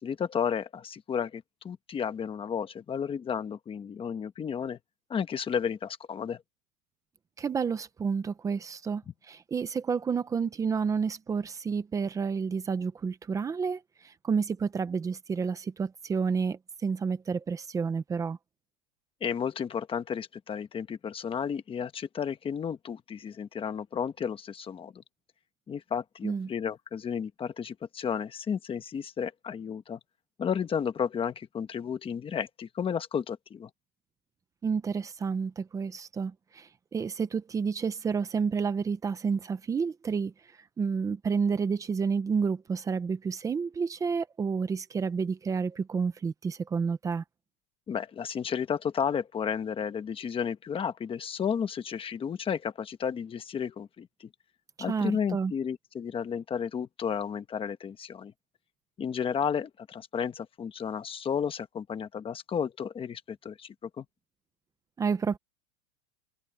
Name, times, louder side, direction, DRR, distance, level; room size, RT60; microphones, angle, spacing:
voice 1, 0.0-4.8 5.1-6.4 19.2-25.0 25.7-30.0 30.4-33.7 47.9-54.3 54.8-58.3 59.0-64.0, left 7 dB, 10° left, 1.1 m, -32 dB
voice 2, 7.4-18.4 26.2-26.5 34.6-40.3 40.8-47.2 54.9-55.5 65.0-65.4, right 5 dB, 10° right, 0.6 m, -30 dB
supercardioid pair, 160°, 43 cm